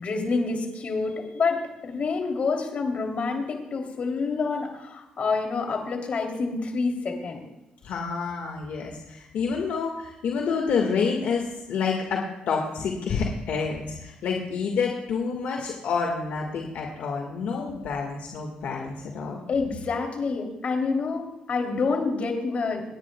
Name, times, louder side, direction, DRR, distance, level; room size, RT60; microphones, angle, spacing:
voice 1, 0.0-7.4 19.5-22.8, left 4 dB, 55° left, 2 dB, 2.9 m, -27 dB
voice 2, 7.8-19.4, left 5 dB, 75° left, 1 dB, 1.7 m, -28 dB
27.0 x 10.5 x 2.3 m, 0.94 s
cardioid pair, 80°, 3 cm